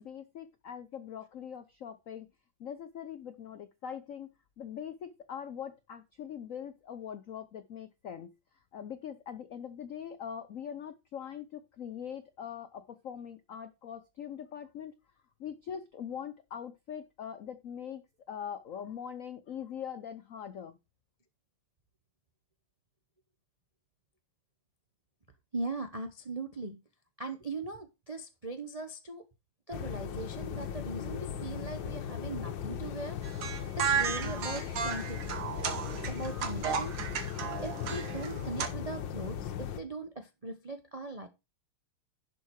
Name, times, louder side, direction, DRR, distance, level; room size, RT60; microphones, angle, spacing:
voice 1, 0.0-2.3 2.6-8.3 8.7-14.9 15.4-18.0 18.3-20.8, left 8 dB, 90° left, 0.7 m, -42 dB
voice 2, 25.5-26.8 27.2-29.2 29.7-33.2 33.8-35.3 36.0-37.0 37.6-41.3, right 3 dB, 55° right, 0.4 m, -39 dB
sound 1, 29.7-39.8, left 9 dB, 65° left, 1.6 m, -38 dB
sound 2, 33.2-38.7, right 7 dB, 75° right, 2.2 m, -34 dB
11.0 x 5.9 x 4.6 m
omnidirectional pair, 2.4 m